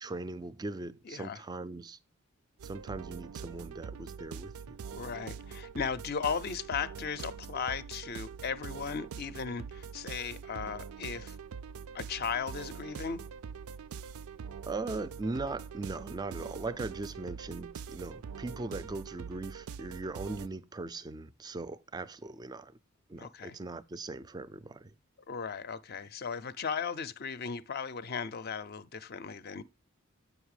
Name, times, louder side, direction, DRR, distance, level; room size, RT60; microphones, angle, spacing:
voice 1, 0.0-2.0 2.6-4.8 14.6-22.8 23.1-24.9, right 3 dB, 20° right, 0.3 m, -39 dB
voice 2, 1.1-1.4 4.9-11.4 11.9-13.2 23.2-23.6 25.3-29.6, left 6 dB, 45° left, 0.5 m, -36 dB
sound 1, 2.6-20.5, right 6 dB, 85° right, 0.4 m, -44 dB
8.0 x 5.4 x 4.8 m
head